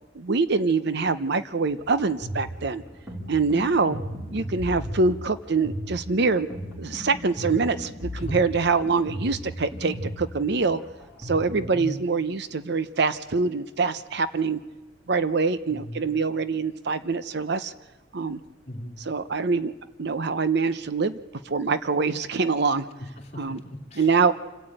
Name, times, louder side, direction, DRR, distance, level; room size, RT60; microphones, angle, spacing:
voice 1, 0.1-2.8 3.3-4.0 4.3-6.5 6.8-10.8 11.2-14.6 15.1-17.7 18.1-18.4 19.0-19.7 20.0-21.2 21.4-22.9 23.4-23.6 24.0-24.3, right 4 dB, 60° right, 13 dB, 0.8 m, -24 dB
sound 1, 1.7-11.5, equal, 15° right, 4.5 m, -36 dB
voice 2, 11.5-12.0 15.7-16.1 18.7-19.0 23.0-24.1, left 1 dB, 35° left, 2 dB, 2.7 m, -38 dB
27.5 x 12.5 x 9.0 m, 1.2 s
head